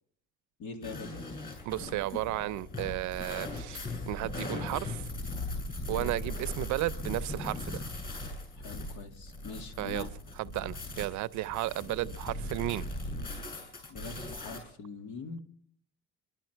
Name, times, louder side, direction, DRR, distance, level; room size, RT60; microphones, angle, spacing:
voice 1, 0.6-1.3 5.9-6.1 8.6-10.1 13.9-15.4, left 3 dB, 75° left, 2.2 m, -43 dB
sound 1, 0.8-14.6, left 2 dB, 30° left, 7.1 m, -39 dB
voice 2, 1.6-5.1 5.9-7.8 9.8-10.1 10.3-12.8, right 16 dB, 70° right, 0.6 m, -34 dB
27.5 x 11.5 x 4.5 m
cardioid pair, 125°, 30 cm